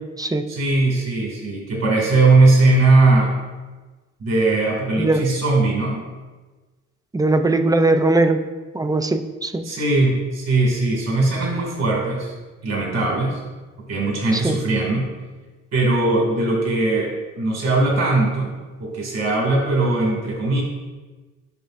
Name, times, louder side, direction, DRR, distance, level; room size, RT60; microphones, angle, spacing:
voice 1, 0.5-3.3 4.2-6.0 9.6-12.3 12.6-13.4 13.9-15.1 15.7-18.5 18.8-20.6, right 2 dB, 60° right, -1 dB, 2.4 m, -19 dB
voice 2, 7.1-8.4 8.7-9.6 14.4-14.6, right 2 dB, 10° right, 8 dB, 0.5 m, -19 dB
12.5 x 5.5 x 2.6 m, 1.3 s
cardioid pair, 90°, 30 cm